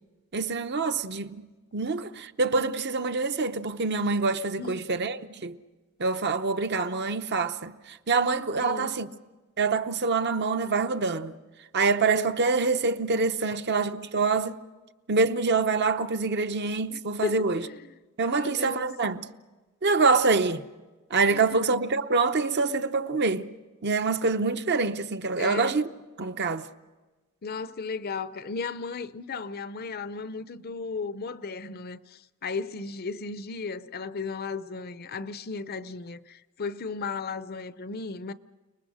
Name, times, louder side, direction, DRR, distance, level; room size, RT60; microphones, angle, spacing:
voice 1, 0.3-1.5 1.7-5.6 6.0-9.1 9.6-11.3 11.7-14.6 15.1-17.6 18.2-19.2 19.8-20.6 21.1-23.5 23.8-25.9 26.2-26.7, right 4 dB, 50° right, 0.8 m, -25 dB
voice 2, 8.6-9.0 16.9-17.8 18.3-18.9 21.3-21.6 25.4-25.8 27.4-38.3, left 4 dB, 45° left, 0.6 m, -35 dB
29.5 x 20.5 x 6.4 m
head